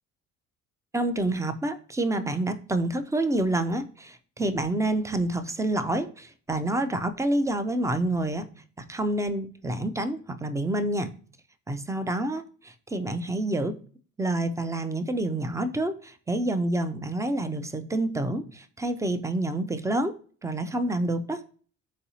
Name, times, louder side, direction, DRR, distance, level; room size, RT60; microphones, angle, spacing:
voice 1, 0.9-8.4 8.8-11.1 11.7-12.5 12.9-13.7 14.2-21.4, right 1 dB, 10° right, 9 dB, 0.3 m, -28 dB
4.0 x 2.6 x 2.8 m, 0.43 s
hypercardioid pair, 50°, 40 cm